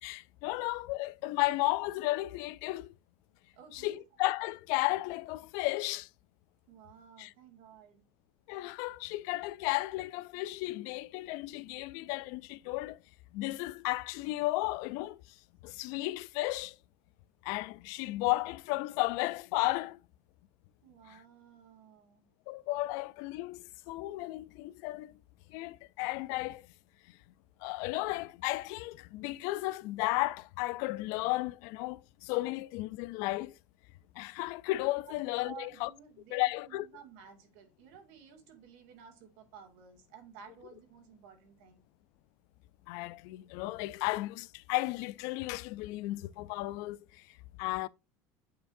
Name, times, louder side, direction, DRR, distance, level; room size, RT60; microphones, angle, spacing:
voice 1, 0.0-2.9 3.7-6.1 7.2-7.3 8.5-13.0 13.3-15.2 15.6-16.8 17.4-20.0 21.1-21.2 22.5-25.1 25.5-26.6 27.6-33.5 34.2-35.9 36.3-36.9 42.9-47.0 47.6-47.9, left 19 dB, 60° left, 0.4 m, -34 dB
voice 2, 3.5-4.0 6.7-8.0 20.8-22.3 35.1-35.2 35.4-41.8, right 7 dB, 75° right, 2.3 m, -54 dB
8.8 x 5.0 x 2.6 m
cardioid pair, 175°, 6 cm